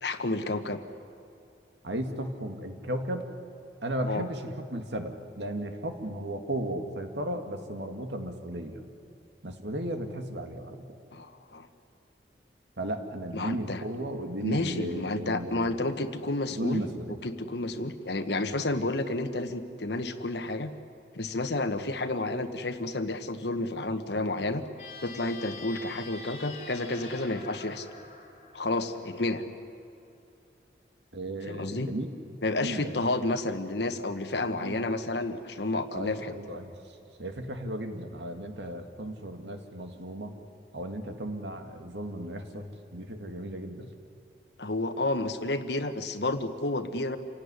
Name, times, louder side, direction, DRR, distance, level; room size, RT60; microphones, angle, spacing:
voice 1, 0.0-0.8 4.0-4.3 11.1-11.7 13.3-13.8 14.4-16.8 17.2-20.7 21.1-24.6 25.0-27.9 28.5-29.4 31.5-31.9 32.4-36.3 44.6-47.2, left 2 dB, 80° left, 8 dB, 1.3 m, -30 dB
voice 2, 1.8-3.3 3.8-8.8 9.4-11.0 12.8-15.8 16.5-17.2 31.1-32.1 32.5-33.3 34.4-34.8 35.9-36.8 37.2-40.3 40.7-43.9, right 1 dB, 90° right, 5 dB, 2.1 m, -35 dB
sound 1, 24.7-29.2, left 3 dB, 40° left, 4.3 m, -45 dB
27.5 x 17.0 x 9.8 m, 2.7 s
head